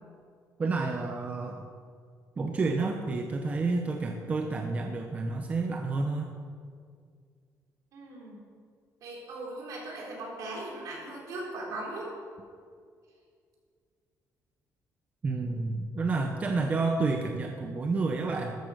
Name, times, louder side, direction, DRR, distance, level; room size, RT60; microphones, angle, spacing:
voice 1, 0.6-1.6 2.4-6.4 15.2-18.6, right 3 dB, 25° right, 3 dB, 0.7 m, -30 dB
voice 2, 7.9-8.4 9.0-12.1, right 2 dB, 65° right, -3 dB, 4.2 m, -39 dB
13.5 x 8.5 x 6.6 m, 2.1 s
cardioid pair, 175°, 6 cm